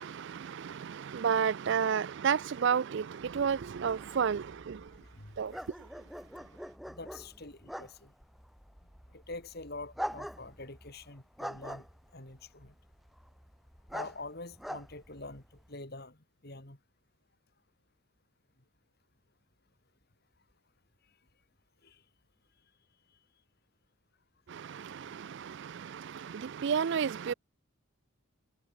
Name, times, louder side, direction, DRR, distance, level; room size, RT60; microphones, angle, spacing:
voice 1, 0.0-4.8 5.4-5.5 24.5-27.3, right 7 dB, 55° right, 0.3 m, -31 dB
sound 1, 3.2-15.7, equal, ahead, 1.4 m, -45 dB
voice 2, 5.0-5.4 6.9-8.1 9.1-11.9 12.1-12.7 13.9-16.8 21.8-22.0, left 2 dB, 45° left, 2.9 m, -46 dB
head